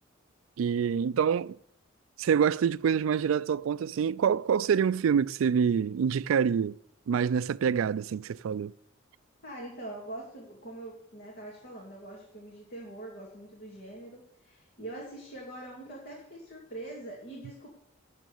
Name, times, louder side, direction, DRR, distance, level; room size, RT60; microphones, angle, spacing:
voice 1, 0.6-1.6 2.2-6.8 7.1-8.7, right 7 dB, 90° right, 0.3 m, -26 dB
voice 2, 9.4-17.7, right 1 dB, 55° left, 2.5 m, -43 dB
9.2 x 7.4 x 7.0 m
head